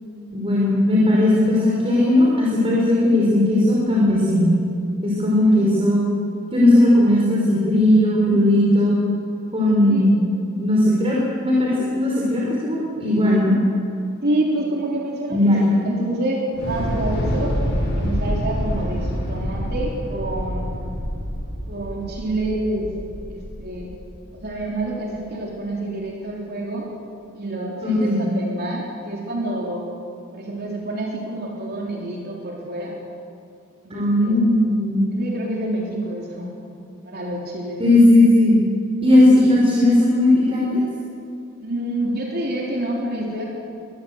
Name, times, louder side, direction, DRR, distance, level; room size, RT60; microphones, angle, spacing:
voice 1, 0.3-4.5 5.0-6.0 6.5-9.0 9.5-10.1 10.6-13.5 15.3-15.6 27.8-28.2 33.9-35.0 37.8-38.6 39.0-40.8, left 1 dB, 25° right, -5 dB, 5.0 m, -17 dB
voice 2, 5.4-6.0 9.8-10.1 14.2-17.6 17.9-20.7 21.7-22.9 23.3-23.9 24.3-26.9 27.3-29.9 30.3-33.0 33.8-34.4 35.1-36.5 37.0-37.8 41.6-43.4, right 1 dB, 50° right, -2 dB, 3.7 m, -28 dB
Thunder / Explosion, 16.5-24.7, equal, 55° left, 7.9 m, -27 dB
24.5 x 20.0 x 8.0 m, 2.5 s
head